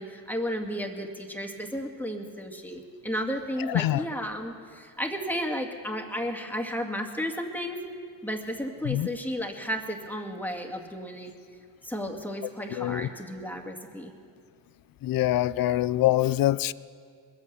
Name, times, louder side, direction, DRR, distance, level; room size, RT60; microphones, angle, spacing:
voice 1, 0.0-7.8 8.2-11.3 11.8-14.1, equal, 5° left, 2.1 m, -33 dB
voice 2, 12.7-13.1 15.0-16.7, left 14 dB, 60° left, 0.5 m, -24 dB
21.0 x 8.5 x 6.9 m
supercardioid pair, 55°, 40 cm